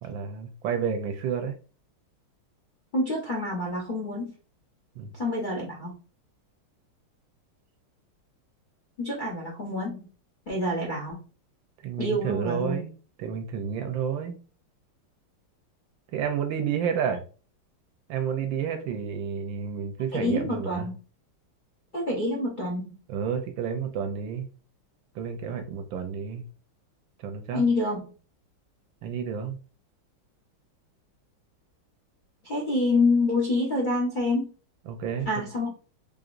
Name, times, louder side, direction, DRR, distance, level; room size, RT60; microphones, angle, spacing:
voice 1, 0.0-1.6 5.0-5.1 11.8-12.9 13.2-14.4 16.1-17.2 18.1-20.9 23.1-24.5 25.1-26.4 27.2-27.6 29.0-29.6 34.9-35.3, right 7 dB, 75° right, 6 dB, 1.2 m, -30 dB
voice 2, 2.9-4.3 5.1-6.0 9.0-10.1 10.5-11.2 12.0-12.8 20.1-20.9 21.9-23.0 27.5-28.0 32.4-34.5 35.3-35.7, left 2 dB, 55° left, -3 dB, 0.5 m, -27 dB
3.8 x 3.4 x 2.5 m, 0.37 s
omnidirectional pair, 2.3 m